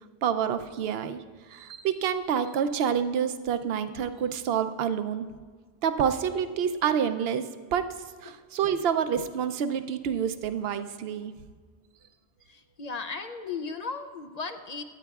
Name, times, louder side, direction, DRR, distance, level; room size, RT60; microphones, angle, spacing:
voice 1, 0.2-5.3 5.8-7.9 8.2-11.3, right 8 dB, 65° right, 10 dB, 0.8 m, -28 dB
voice 2, 12.5-14.8, left 4 dB, 50° left, 7 dB, 0.5 m, -36 dB
22.5 x 9.3 x 2.4 m, 1.5 s
omnidirectional pair, 1.2 m